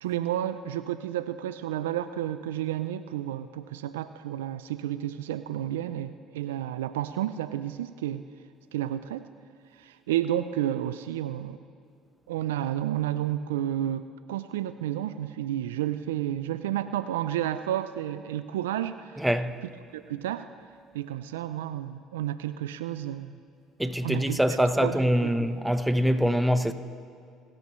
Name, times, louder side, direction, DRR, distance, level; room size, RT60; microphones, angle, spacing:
voice 1, 0.0-8.2 8.7-9.2 9.8-11.6 12.3-19.2 19.9-20.5 20.9-23.4 24.0-25.3, right 12 dB, 90° right, 0.4 m, -31 dB
voice 2, 19.2-19.6 23.8-26.7, equal, 5° right, 1.0 m, -24 dB
29.0 x 14.0 x 3.2 m
hypercardioid pair, 65°, 0 cm